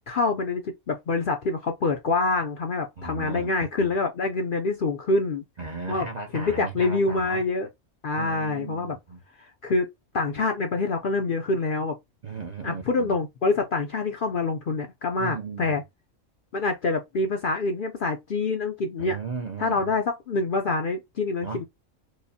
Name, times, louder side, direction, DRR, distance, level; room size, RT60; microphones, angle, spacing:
voice 1, 0.1-5.4 5.9-6.1 6.3-7.7 8.0-9.0 9.4-12.0 12.6-15.8 16.5-19.2 19.6-21.6, left 3 dB, 55° left, 0.6 m, -26 dB
voice 2, 3.0-3.5 3.8-3.9 5.6-7.4 8.1-9.2 12.2-13.1 15.2-15.8 19.0-19.9 21.4-21.6, right 4 dB, 45° right, 0.6 m, -36 dB
4.8 x 2.1 x 2.7 m
omnidirectional pair, 1.4 m